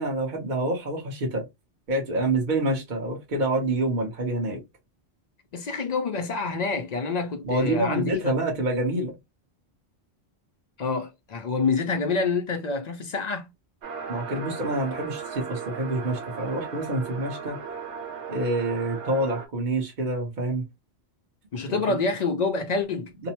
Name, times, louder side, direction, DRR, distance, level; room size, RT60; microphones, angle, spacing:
voice 1, 0.0-1.4 1.9-4.6 7.4-9.1 14.1-17.6 18.3-20.6 21.7-22.0 23.2-23.3, right 2 dB, 45° right, 1.1 m, -27 dB
voice 2, 5.5-8.1 10.8-13.5 21.5-23.1, left 4 dB, 60° left, 0.4 m, -27 dB
sound 1, 13.8-19.5, right 6 dB, 85° right, 1.0 m, -37 dB
2.9 x 2.1 x 2.8 m
omnidirectional pair, 1.1 m